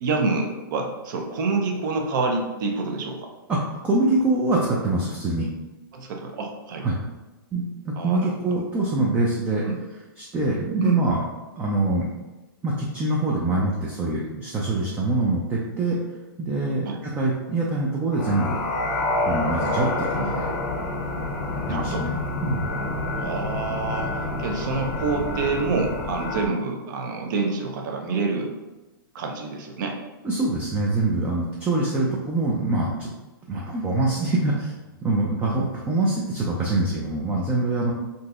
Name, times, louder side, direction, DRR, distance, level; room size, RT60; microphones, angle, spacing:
voice 1, 0.0-3.3 5.9-6.9 8.0-8.3 9.6-9.8 10.8-11.0 16.9-17.0 21.7-22.1 23.2-28.5 29.1-30.0 33.5-33.7, right 3 dB, 55° right, 3 dB, 0.6 m, -27 dB
voice 2, 3.5-5.5 6.8-7.0 7.5-9.6 10.2-11.2 11.6-12.1 12.6-16.0 16.4-18.6 19.3-20.5 21.7-22.2 22.4-22.7 30.2-33.1 33.5-34.7 35.0-37.9, right 2 dB, 10° right, -4 dB, 0.3 m, -24 dB
sound 1, 18.1-26.5, left 2 dB, 35° left, 0.6 m, -28 dB
3.8 x 2.7 x 2.4 m, 1.1 s
hypercardioid pair, 145°, 12 cm